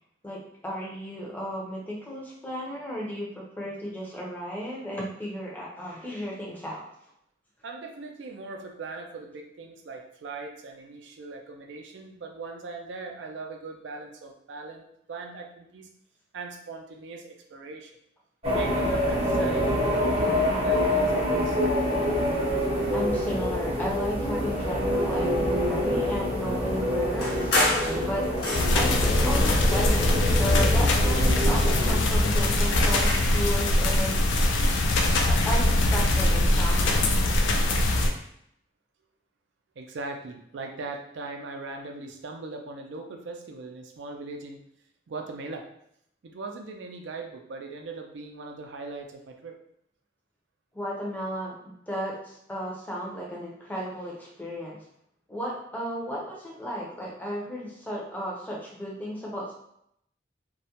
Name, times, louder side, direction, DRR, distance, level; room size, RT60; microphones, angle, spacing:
voice 1, 0.2-6.8 22.9-34.2 35.3-37.2 50.7-54.8 55.3-59.5, equal, 10° left, -4 dB, 0.5 m, -34 dB
voice 2, 7.6-15.9 16.3-18.0 18.5-21.6 39.8-44.6 45.1-45.6 46.2-49.6, right 3 dB, 80° right, 3 dB, 0.4 m, -40 dB
sound 1, 18.4-32.0, equal, 35° right, 0.6 m, -26 dB
sound 2, 27.2-29.1 29.7-30.9 31.2-33.5, left 1 dB, 60° left, 0.7 m, -30 dB
sound 3, 28.5-38.1, left 1 dB, 85° left, 0.4 m, -22 dB
2.3 x 2.1 x 2.8 m, 0.73 s
head